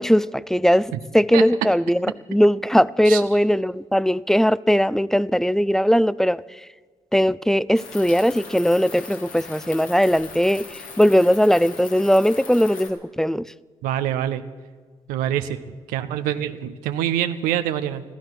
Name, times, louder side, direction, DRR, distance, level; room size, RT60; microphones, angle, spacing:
voice 1, 0.0-6.4 7.1-13.5, equal, 5° left, 0.4 m, -19 dB
sound 1, 7.7-12.9, left 4 dB, 75° left, 2.4 m, -40 dB
voice 2, 13.8-14.4 15.1-15.6 15.9-18.0, right 11 dB, 90° right, 0.6 m, -25 dB
14.5 x 14.0 x 6.0 m
supercardioid pair, 50°, 14 cm